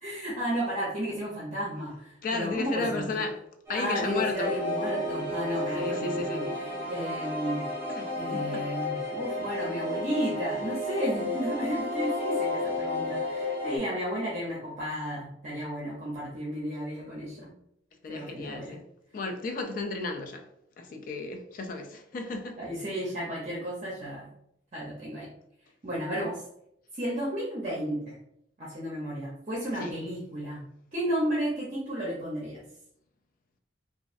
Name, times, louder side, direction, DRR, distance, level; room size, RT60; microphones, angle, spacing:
voice 1, 0.0-3.2 3.7-6.4 6.9-7.7 8.1-17.5 18.1-18.8 22.6-24.3 24.7-25.3 25.8-26.4 26.9-28.2 28.6-30.6 30.9-32.6, equal, 40° right, 0.6 m, -33 dB
voice 2, 2.2-3.4 3.7-4.6 5.8-6.6 7.9-8.6 13.4-13.6 18.0-18.8 19.1-20.5 20.8-22.6 29.8-30.0, left 3 dB, 45° left, 0.3 m, -34 dB
sound 1, 3.7-13.8, left 1 dB, 20° right, 1.2 m, -32 dB
3.1 x 2.3 x 2.5 m
head